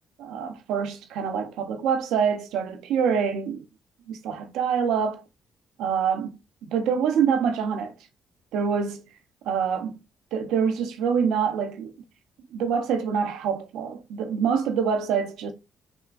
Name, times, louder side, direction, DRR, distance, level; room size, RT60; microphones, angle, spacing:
voice 1, 0.2-3.6 4.1-5.2 5.8-6.3 6.6-7.9 8.5-9.0 9.5-9.9 10.3-11.9 12.5-15.5, right 7 dB, 80° right, 0.6 m, -25 dB
3.4 x 2.9 x 2.3 m
supercardioid pair, 60°, 0 cm